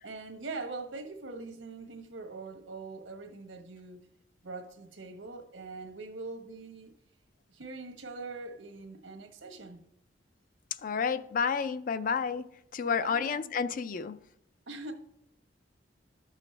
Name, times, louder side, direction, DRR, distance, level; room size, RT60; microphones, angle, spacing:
voice 1, 0.0-4.1 4.4-7.0 7.5-9.8 13.0-13.5 14.7-14.9, right 3 dB, 85° right, 1.3 m, -42 dB
voice 2, 10.8-14.3, left 6 dB, 45° left, 0.4 m, -31 dB
12.5 x 6.3 x 3.3 m
head